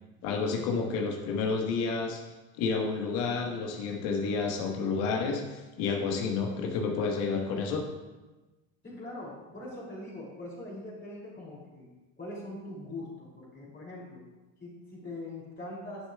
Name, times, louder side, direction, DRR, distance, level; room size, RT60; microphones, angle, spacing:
voice 1, 0.2-2.2 2.6-7.9, left 4 dB, 75° left, 1 dB, 1.4 m, -30 dB
voice 2, 8.8-11.9 12.2-14.2 14.6-16.1, left 1 dB, 25° left, -5 dB, 2.6 m, -42 dB
11.0 x 6.5 x 2.2 m, 1.1 s
supercardioid pair, 95°, 47 cm